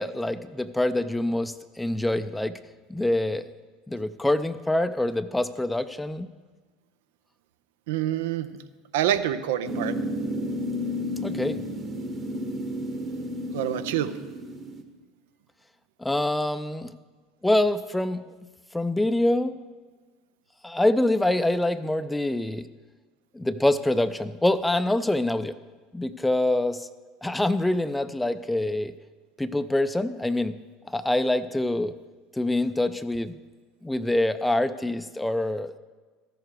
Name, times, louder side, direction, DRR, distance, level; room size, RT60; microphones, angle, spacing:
voice 1, 0.0-2.6 2.9-3.5 3.9-6.3 11.2-11.6 16.0-16.9 17.4-18.3 18.7-19.5 20.6-22.7 23.3-25.6 25.9-26.9 27.2-28.9 29.4-30.6 30.9-31.9 32.3-33.3 33.8-35.8, left 1 dB, 10° left, 12 dB, 0.4 m, -25 dB
voice 2, 7.9-8.5 8.9-9.9 13.5-14.1, right 11 dB, 75° right, 12 dB, 0.5 m, -26 dB
sound 1, 9.6-14.8, equal, 35° right, 1.3 m, -32 dB
14.0 x 6.7 x 4.7 m, 1.4 s
hypercardioid pair, 80°, 0 cm